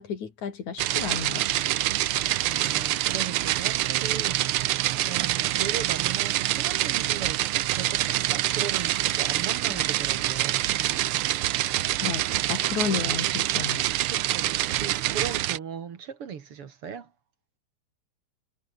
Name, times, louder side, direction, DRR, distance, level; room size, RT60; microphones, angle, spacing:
voice 1, 0.0-1.7 9.7-9.8 12.0-13.8, left 6 dB, 80° left, 4.5 m, -32 dB
sound 1, 0.8-15.6, right 14 dB, 75° right, 1.3 m, -26 dB
voice 2, 2.4-4.7 5.1-7.4 7.7-10.9 12.3-12.5 12.8-13.1 14.1-17.1, right 7 dB, 55° right, 2.6 m, -38 dB
omnidirectional pair, 3.3 m